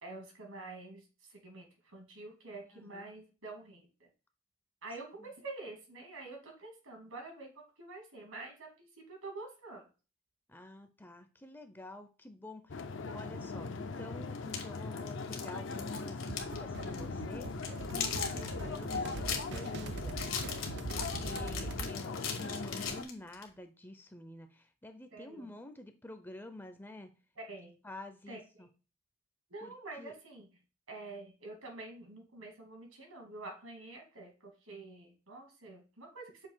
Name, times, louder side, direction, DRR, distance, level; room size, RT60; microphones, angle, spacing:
voice 1, 0.0-4.1 4.8-9.8 17.9-18.4 21.0-21.2 25.1-25.5 27.4-27.7 28.3-28.7 29.5-30.5 30.9-36.5, right 2 dB, 85° right, 2 dB, 2.3 m, -47 dB
voice 2, 2.7-3.3 5.2-5.3 10.5-17.5 18.3-20.2 20.9-27.1 27.8-28.7 29.6-30.1, left 1 dB, 10° left, 8 dB, 0.5 m, -49 dB
sound 1, 12.7-23.0, left 4 dB, 60° left, 0.5 m, -40 dB
sound 2, 14.3-16.6 16.8-17.0 17.4-23.5, left 7 dB, 75° left, 1.5 m, -39 dB
sound 3, 16.3-21.9, right 4 dB, 55° right, 0.4 m, -43 dB
6.5 x 2.8 x 5.5 m, 0.33 s
head